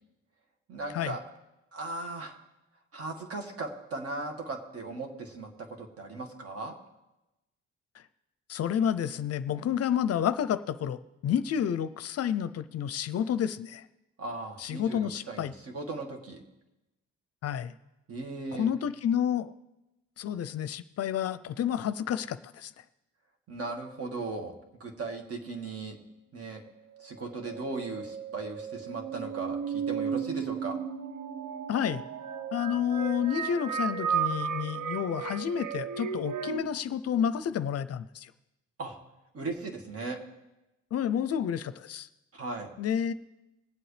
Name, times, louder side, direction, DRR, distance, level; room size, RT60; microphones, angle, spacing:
voice 1, 0.7-1.2 1.7-2.4 2.9-6.7 14.2-16.4 18.1-18.7 23.5-24.5 24.8-26.0 26.3-26.6 27.0-30.8 38.8-39.0 39.3-40.2 42.3-42.7, right 3 dB, 50° right, 4 dB, 1.9 m, -37 dB
voice 2, 8.5-13.8 14.6-15.5 17.4-17.7 18.5-19.5 20.2-22.7 31.7-32.0 32.5-38.3 40.9-42.1 42.8-43.1, left 9 dB, 55° left, 14 dB, 0.5 m, -30 dB
sound 1, 27.0-36.6, right 7 dB, 85° right, 0.8 m, -34 dB
21.5 x 7.8 x 3.3 m, 0.98 s
cardioid pair, 90°, 30 cm